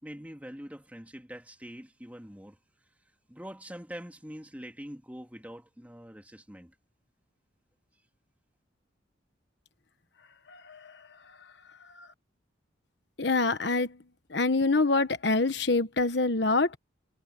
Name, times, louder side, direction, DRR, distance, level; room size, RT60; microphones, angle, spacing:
voice 1, 0.0-2.6 3.3-6.7, equal, 10° right, 3.1 m, -44 dB
voice 2, 10.5-11.0 12.0-12.1 13.2-14.0 14.3-16.8, left 3 dB, 60° left, 1.2 m, -26 dB
head